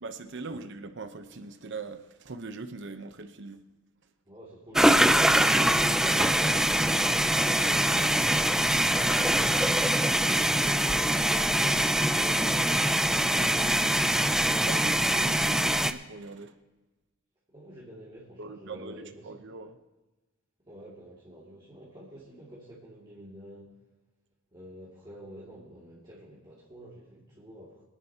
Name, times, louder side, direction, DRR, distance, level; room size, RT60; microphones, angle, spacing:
voice 1, 0.0-3.6 6.1-6.8 14.6-16.5 18.4-19.8, right 3 dB, 60° right, 7 dB, 0.9 m, -41 dB
voice 2, 4.3-6.7 7.4-13.9 17.5-19.3 20.6-23.7 24.5-27.8, equal, 25° right, -8 dB, 2.5 m, -47 dB
sound 1, 4.8-15.9, right 1 dB, ahead, 0.4 m, -23 dB
24.0 x 10.0 x 2.9 m, 1.2 s
head